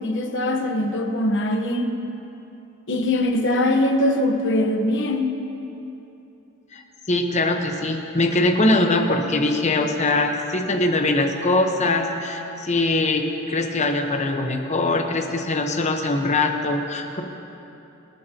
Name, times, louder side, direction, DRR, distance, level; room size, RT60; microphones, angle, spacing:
voice 1, 0.0-1.9 2.9-5.3, left 1 dB, 60° left, 4 dB, 1.1 m, -22 dB
voice 2, 7.1-17.2, left 2 dB, 35° left, 3 dB, 1.0 m, -22 dB
26.5 x 9.1 x 2.9 m, 2.9 s
head